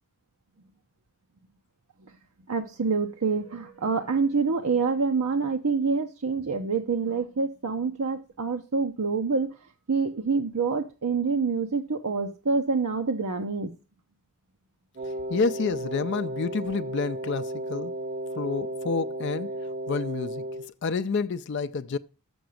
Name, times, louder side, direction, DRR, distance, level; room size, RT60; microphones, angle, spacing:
voice 1, 2.5-9.5 9.9-13.7, right 4 dB, 85° right, 0.8 m, -26 dB
Wind instrument woodwind instrument, 15.0-20.7, right 1 dB, 35° right, 0.6 m, -34 dB
voice 2, 15.3-17.9 18.4-19.6 19.9-20.4 20.8-22.0, left 4 dB, 55° left, 0.4 m, -29 dB
7.1 x 6.8 x 6.3 m
head